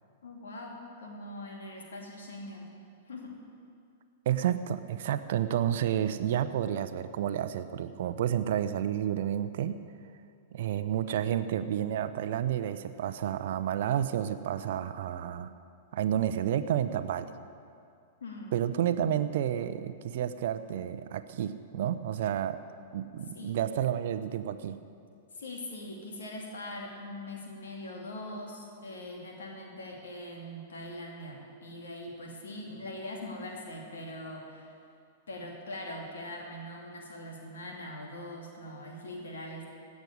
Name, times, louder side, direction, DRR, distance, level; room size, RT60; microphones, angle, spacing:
voice 1, 0.2-2.7 3.1-3.4 18.2-18.6 23.3-23.6 25.3-34.7 35.3-39.7, left 1 dB, 70° left, 0 dB, 2.5 m, -42 dB
voice 2, 4.3-9.8 10.5-15.5 15.9-17.3 18.5-22.6 22.9-24.8, right 10 dB, 55° right, 11 dB, 0.7 m, -30 dB
17.0 x 6.3 x 10.0 m, 2.4 s
figure-of-eight pair, 100°, 0 cm